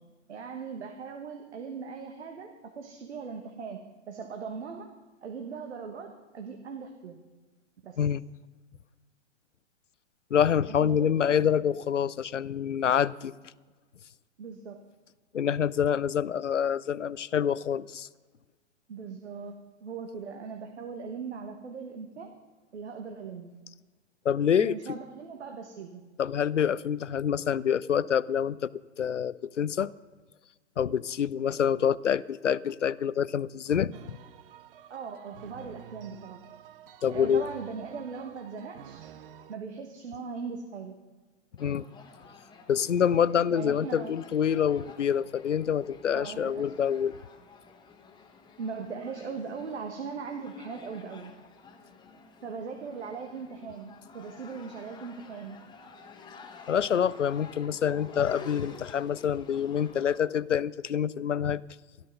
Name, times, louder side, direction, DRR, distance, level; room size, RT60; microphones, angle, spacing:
voice 1, 0.3-4.9 5.2-7.2 7.8-8.0 10.8-11.4 14.4-14.8 18.9-22.3 22.7-23.5 24.6-26.0 34.9-36.4 37.1-39.0 39.5-41.0 43.5-44.1 46.1-46.7 48.6-51.3 52.4-55.6, right 5 dB, 70° right, 4 dB, 1.5 m, -39 dB
voice 2, 10.3-13.3 15.3-18.1 24.2-25.0 26.2-28.7 29.0-29.9 30.8-34.2 37.0-37.4 41.6-41.8 42.7-47.1 56.7-61.6, left 8 dB, 85° left, 20 dB, 0.5 m, -26 dB
sound 1, 33.9-39.6, right 10 dB, 50° right, 0.8 m, -50 dB
chance at goal, 41.6-60.2, left 5 dB, 10° left, 1.2 m, -50 dB
13.0 x 12.5 x 5.4 m, 1.3 s
figure-of-eight pair, 110°, 36 cm